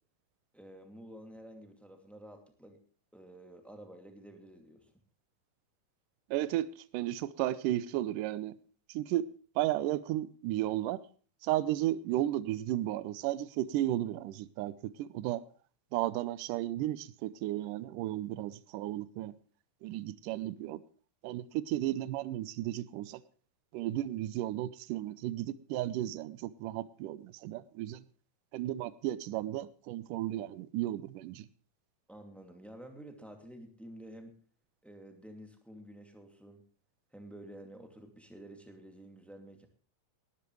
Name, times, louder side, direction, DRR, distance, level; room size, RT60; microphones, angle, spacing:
voice 1, 0.5-2.8 3.1-4.9 32.1-34.4 34.8-36.6 37.1-39.7, right 1 dB, ahead, 4 dB, 1.3 m, -50 dB
voice 2, 6.3-8.6 8.9-9.3 9.6-11.0 11.4-15.4 15.9-19.4 19.8-20.8 21.2-23.2 23.7-28.0 28.5-31.5, right 14 dB, 75° right, 16 dB, 2.1 m, -34 dB
18.5 x 12.5 x 3.2 m, 0.41 s
omnidirectional pair, 4.4 m